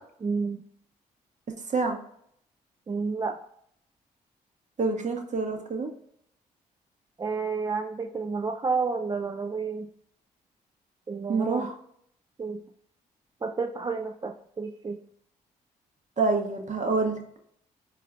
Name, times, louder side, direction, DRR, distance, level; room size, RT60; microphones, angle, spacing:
voice 1, 0.2-0.6 2.9-3.4 7.2-9.9 11.1-11.7 12.4-12.6 13.4-15.0, right 4 dB, 20° right, 4 dB, 0.3 m, -30 dB
voice 2, 4.8-5.9 11.3-11.7 16.2-17.2, right 3 dB, 40° right, 4 dB, 0.9 m, -26 dB
4.2 x 2.4 x 3.4 m, 0.69 s
hypercardioid pair, 45°, 19 cm